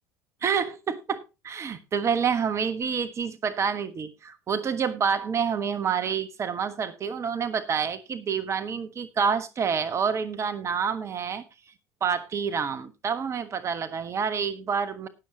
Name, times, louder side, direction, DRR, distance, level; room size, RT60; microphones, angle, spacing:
voice 1, 0.4-11.4 12.0-15.1, right 6 dB, 35° right, 1.4 m, -28 dB
19.0 x 7.4 x 2.8 m
hypercardioid pair, 70°, 8 cm